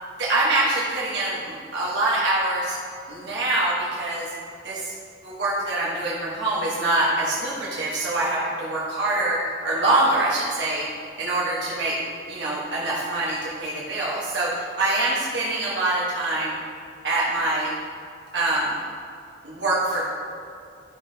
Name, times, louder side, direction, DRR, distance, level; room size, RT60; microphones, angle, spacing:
voice 1, 0.2-2.8 3.1-4.3 4.6-4.9 5.2-10.9 11.2-12.0 12.3-16.6 17.0-17.7 18.3-18.8 19.4-20.1, right 2 dB, 70° right, -6 dB, 1.3 m, -24 dB
12.0 x 5.6 x 2.8 m, 2.5 s
head